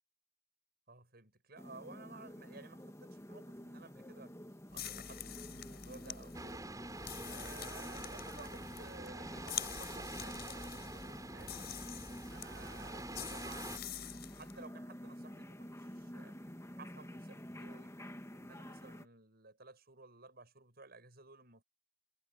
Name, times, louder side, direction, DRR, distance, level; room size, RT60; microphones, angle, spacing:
voice 1, 0.9-4.4 4.7-6.6 7.2-11.7 12.1-14.0 14.3-16.4 16.8-17.9 18.3-21.6, right 3 dB, 50° right, 7.6 m, -56 dB
Surround Room Tone (soft), 1.6-19.0, equal, 15° left, 1.8 m, -50 dB
sound 1, 4.7-14.6, left 9 dB, 55° left, 4.7 m, -47 dB
sound 2, 6.3-13.8, right 2 dB, 20° right, 7.1 m, -47 dB
head